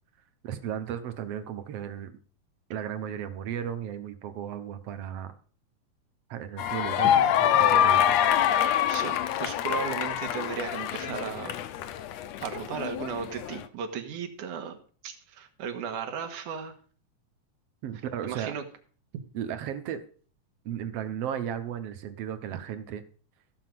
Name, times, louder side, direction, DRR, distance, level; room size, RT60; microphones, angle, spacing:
voice 1, 0.4-2.2 2.7-5.3 6.3-8.2 17.8-18.6 19.3-20.0 20.7-23.0, right 9 dB, 60° right, 10 dB, 1.9 m, -35 dB
sound 1, 6.6-13.6, left 10 dB, 70° left, 1.9 m, -25 dB
voice 2, 8.9-11.6 12.4-14.8 15.0-16.7 18.2-18.6, right 7 dB, 90° right, 6 dB, 3.0 m, -35 dB
15.0 x 5.2 x 7.7 m, 0.43 s
omnidirectional pair, 3.5 m